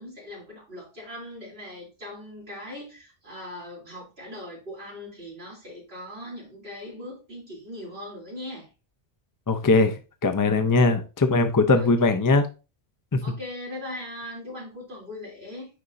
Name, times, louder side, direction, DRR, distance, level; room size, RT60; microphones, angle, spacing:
voice 1, 0.0-8.7 11.8-11.9 13.2-15.7, left 1 dB, 60° right, 3.5 m, -40 dB
voice 2, 9.5-12.5 13.1-13.2, left 3 dB, 25° left, 0.4 m, -20 dB
9.4 x 4.1 x 2.6 m
omnidirectional pair, 1.2 m